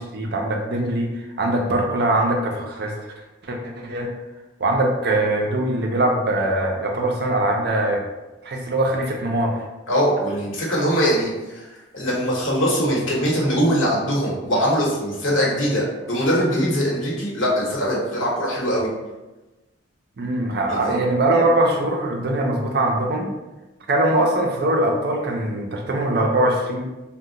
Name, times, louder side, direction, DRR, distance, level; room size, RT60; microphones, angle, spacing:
voice 1, 0.0-3.1 3.4-4.1 4.6-8.0 8.4-9.6 20.2-23.3 23.9-26.9, right 1 dB, 50° right, 1 dB, 0.4 m, -22 dB
voice 2, 9.9-11.6 11.9-18.9 20.7-21.0, equal, 80° left, -4 dB, 1.0 m, -22 dB
2.7 x 2.1 x 3.7 m, 1.1 s
head